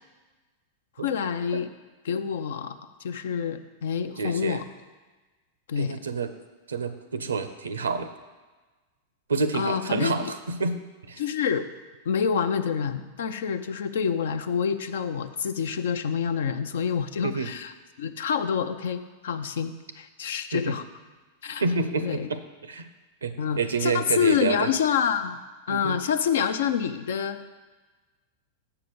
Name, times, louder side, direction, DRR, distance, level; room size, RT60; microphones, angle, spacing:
voice 1, 1.0-1.7 2.0-2.7 3.0-4.6 5.7-6.0 9.5-10.3 11.2-11.7 12.1-17.7 18.0-20.8 21.4-21.6 22.0-22.3 23.4-25.4 25.7-27.4, left 7 dB, 70° left, 10 dB, 0.5 m, -27 dB
voice 2, 4.2-4.6 5.8-6.3 6.7-8.1 9.3-10.8 11.1-11.2 17.2-17.5 20.5-20.8 21.6-22.9 23.2-24.7 25.7-26.0, right 4 dB, 85° right, 11 dB, 0.6 m, -28 dB
6.9 x 4.8 x 6.9 m, 1.3 s
hypercardioid pair, 95°, 0 cm